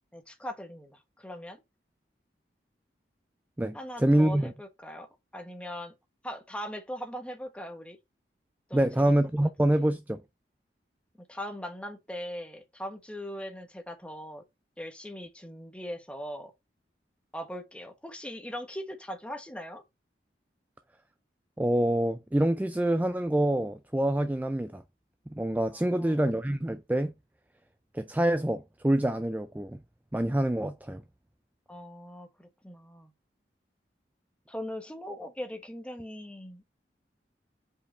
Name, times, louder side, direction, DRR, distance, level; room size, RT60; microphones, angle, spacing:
voice 1, 0.1-1.6 3.7-5.9 6.2-8.0 8.7-9.1 9.4-9.8 11.2-14.4 14.8-16.5 17.3-19.8 25.7-26.2 31.7-33.1 34.5-36.7, equal, 5° left, 1.1 m, -40 dB
voice 2, 3.6-4.5 8.7-10.2 21.6-24.8 25.3-27.1 27.9-29.8 30.1-31.0, right 1 dB, 10° right, 0.3 m, -26 dB
5.2 x 4.8 x 4.3 m
head